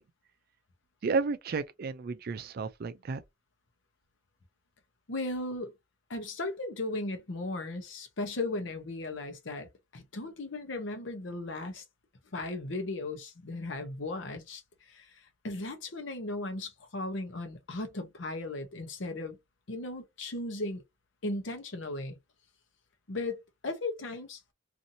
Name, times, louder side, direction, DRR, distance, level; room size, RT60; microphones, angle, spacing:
voice 1, 1.0-3.2, right 4 dB, 50° right, 0.4 m, -32 dB
voice 2, 5.1-5.7 6.1-11.8 12.3-19.4 19.7-20.8 21.2-22.2 23.1-24.5, left 2 dB, 70° left, 0.8 m, -36 dB
2.7 x 2.6 x 2.6 m
head